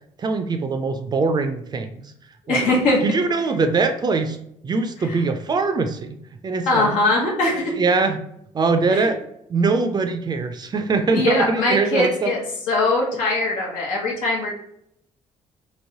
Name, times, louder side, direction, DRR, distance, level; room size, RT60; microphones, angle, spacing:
voice 1, 0.2-2.0 2.5-2.7 3.0-4.4 4.6-6.2 6.4-6.9 7.5-8.2 8.5-9.2 9.5-12.4, right 4 dB, 35° right, 6 dB, 0.4 m, -22 dB
voice 2, 2.5-3.0 6.7-7.7 8.9-9.1 11.1-12.4 12.7-14.5, left 2 dB, 85° left, -3 dB, 0.9 m, -21 dB
3.0 x 2.9 x 2.7 m, 0.73 s
cardioid pair, 95°, 13 cm